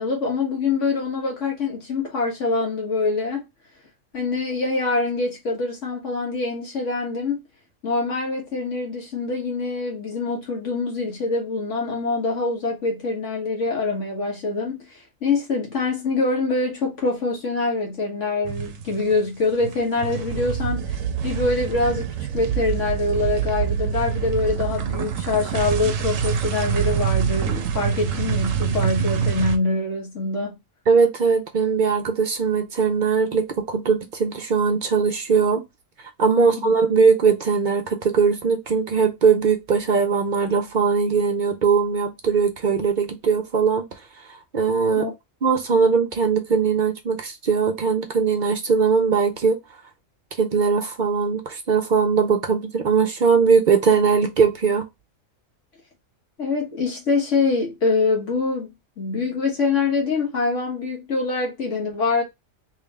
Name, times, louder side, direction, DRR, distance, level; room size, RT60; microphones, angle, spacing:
voice 1, 0.0-3.4 4.1-7.4 7.8-30.5 36.4-36.7 45.0-45.1 56.4-58.7 59.0-62.2, left 3 dB, 65° left, 1.6 m, -24 dB
sound 1, 18.4-19.2 19.5-29.6, right 7 dB, 80° right, 1.0 m, -25 dB
voice 2, 30.9-35.6 36.2-43.8 44.5-45.1 45.4-49.6 50.4-54.9, right 5 dB, 55° right, 0.6 m, -20 dB
3.5 x 2.9 x 3.3 m
omnidirectional pair, 1.4 m